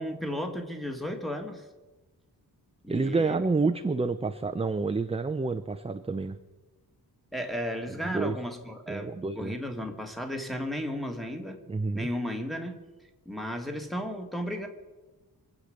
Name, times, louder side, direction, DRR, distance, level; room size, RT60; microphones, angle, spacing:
voice 1, 0.0-1.7 2.8-3.3 7.3-11.6 11.9-12.8 13.2-14.7, equal, ahead, 4 dB, 1.6 m, -34 dB
voice 2, 2.9-6.4 8.0-8.4 8.9-9.5 11.7-12.1, right 3 dB, 15° right, 9 dB, 0.4 m, -28 dB
25.0 x 8.3 x 6.4 m, 1.2 s
wide cardioid pair, 175°, 39 cm